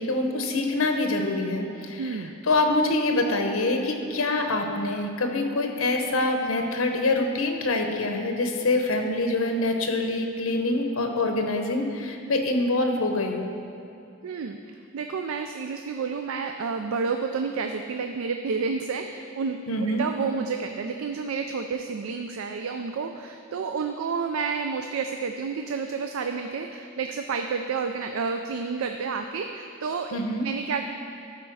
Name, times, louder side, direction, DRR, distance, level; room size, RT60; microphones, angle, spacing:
voice 1, 0.0-13.4 19.7-20.0 30.1-30.5, left 2 dB, 85° left, 4 dB, 0.9 m, -25 dB
voice 2, 2.0-2.3 14.2-14.6 14.9-30.2 30.4-30.8, right 5 dB, 75° right, 6 dB, 0.4 m, -30 dB
12.5 x 4.4 x 4.7 m, 2.6 s
head